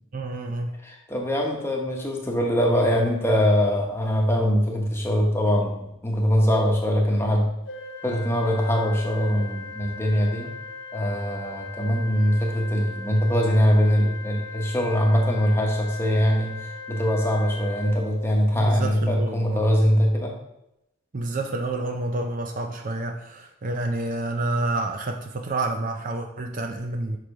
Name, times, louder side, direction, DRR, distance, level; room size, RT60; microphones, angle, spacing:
voice 1, 0.1-0.8 18.5-19.6 21.1-27.2, right 2 dB, 40° right, 4 dB, 0.5 m, -29 dB
voice 2, 0.8-7.5 8.0-10.5 10.9-20.3, equal, 10° left, 0 dB, 1.1 m, -22 dB
Organ, 7.7-18.7, left 3 dB, 55° left, 0.7 m, -39 dB
6.0 x 5.0 x 5.0 m, 0.84 s
head